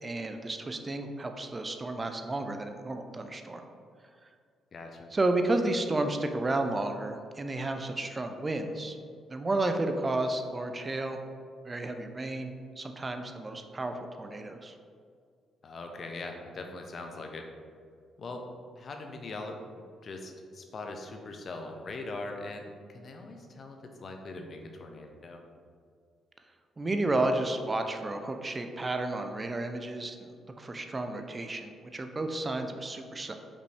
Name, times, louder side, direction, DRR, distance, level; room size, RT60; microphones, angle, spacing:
voice 1, 0.0-3.6 5.1-9.0 9.3-11.2 11.6-14.7 26.8-33.3, right 2 dB, 25° right, 6 dB, 0.4 m, -32 dB
voice 2, 4.7-5.1 15.6-17.5 18.2-18.5 18.8-19.6 20.0-25.4, left 2 dB, 45° left, 3 dB, 0.5 m, -41 dB
5.2 x 2.7 x 3.3 m, 2.1 s
cardioid pair, 90°, 0 cm